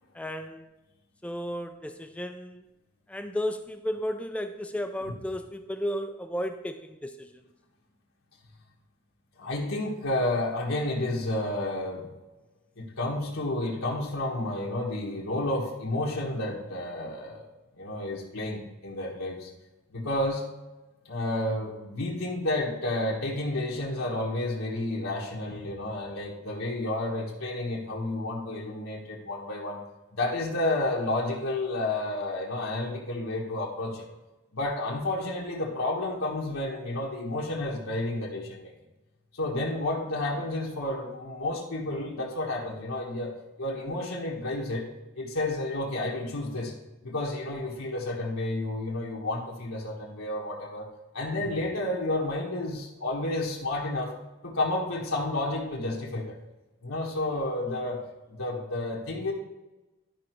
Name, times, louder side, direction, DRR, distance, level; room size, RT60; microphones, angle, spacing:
voice 1, 0.1-0.7 1.2-2.6 3.1-7.5, equal, 5° left, 7 dB, 0.4 m, -34 dB
voice 2, 9.4-12.1 12.8-17.5 17.7-19.5 19.9-20.4 21.0-29.8 30.1-34.0 34.5-38.7 39.3-43.3 43.6-44.9 45.1-46.7 47.0-50.9 51.1-54.1 54.4-56.4 56.8-58.0 58.3-59.3, left 2 dB, 75° left, -4 dB, 1.4 m, -31 dB
12.0 x 5.0 x 4.5 m, 1.1 s
head